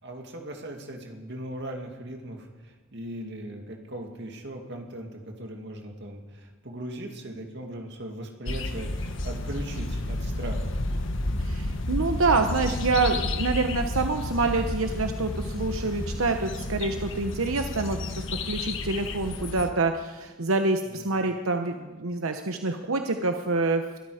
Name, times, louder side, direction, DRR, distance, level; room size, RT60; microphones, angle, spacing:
voice 1, 0.0-10.7 20.8-21.3, right 1 dB, 55° right, 2 dB, 2.3 m, -39 dB
sound 1, 8.5-19.7, left 2 dB, 60° left, 1.2 m, -31 dB
voice 2, 11.4-24.0, right 3 dB, 85° right, 6 dB, 1.0 m, -27 dB
22.5 x 13.0 x 5.0 m, 1.2 s
head